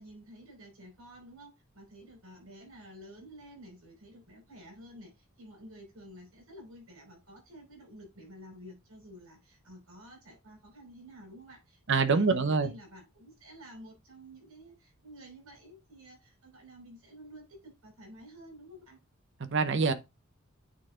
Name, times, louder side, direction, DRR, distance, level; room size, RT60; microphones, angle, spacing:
voice 1, 0.0-19.0, equal, 80° right, 5.0 m, -51 dB
voice 2, 11.9-12.7 19.4-19.9, right 4 dB, 55° right, 0.8 m, -25 dB
9.3 x 4.2 x 3.7 m
head